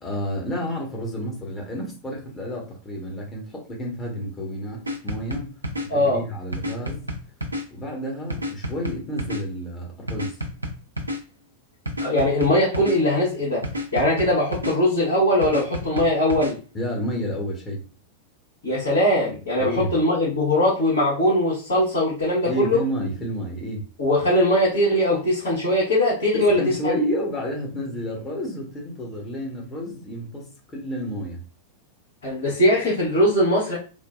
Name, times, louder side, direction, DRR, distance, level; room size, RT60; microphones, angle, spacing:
voice 1, 0.0-5.5 5.8-7.0 7.7-10.4 16.7-17.8 19.6-19.9 22.4-23.8 26.3-31.4, equal, 20° left, 1.1 m, -30 dB
sound 1, 4.9-5.9 6.5-7.6 8.3-9.4 10.1-11.2 11.9-13.0 13.6-14.7 15.4-16.5, left 1 dB, 80° right, 0.5 m, -29 dB
voice 2, 5.9-6.2 12.0-13.6 13.9-16.6 18.6-22.8 24.0-27.0 32.2-33.8, left 1 dB, 65° left, 1.5 m, -21 dB
3.5 x 2.2 x 2.4 m
figure-of-eight pair, 90°, 0 cm